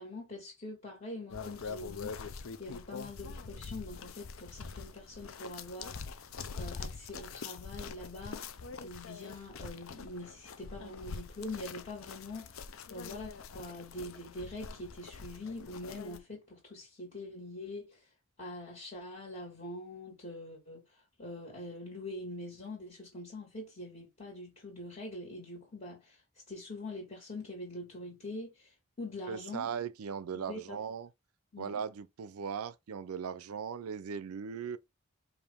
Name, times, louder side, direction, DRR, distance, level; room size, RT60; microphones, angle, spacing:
voice 1, 0.0-18.1 18.4-26.2 26.5-29.7 30.3-30.8 31.5-31.8, left 2 dB, 35° left, 1.7 m, -44 dB
sound 1, 1.3-16.2, left 5 dB, 70° left, 0.5 m, -44 dB
voice 2, 29.3-31.1 31.6-34.8, right 6 dB, 90° right, 0.4 m, -38 dB
5.0 x 2.6 x 3.4 m
head